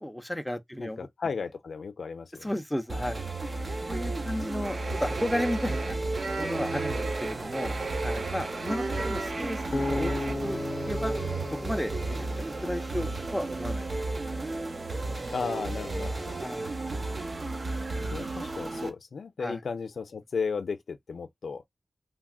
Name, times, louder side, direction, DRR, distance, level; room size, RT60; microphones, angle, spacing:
voice 1, 0.0-1.1 2.4-3.2 3.9-6.0 6.4-7.7 8.0-10.1 10.4-11.1 11.6-11.9 12.6-13.9 15.5-15.7 16.4-16.7 18.0-18.3 19.4-19.6, left 1 dB, 5° left, 0.6 m, -33 dB
voice 2, 0.8-2.5 15.3-16.4 18.1-21.6, left 5 dB, 75° left, 0.5 m, -34 dB
sound 1, 2.9-18.9, right 2 dB, 40° right, 0.8 m, -33 dB
sound 2, 4.6-10.4, right 3 dB, 65° right, 0.9 m, -35 dB
Acoustic guitar, 9.7-12.9, left 2 dB, 30° left, 0.9 m, -34 dB
3.4 x 2.4 x 2.2 m
wide cardioid pair, 115°, 0 cm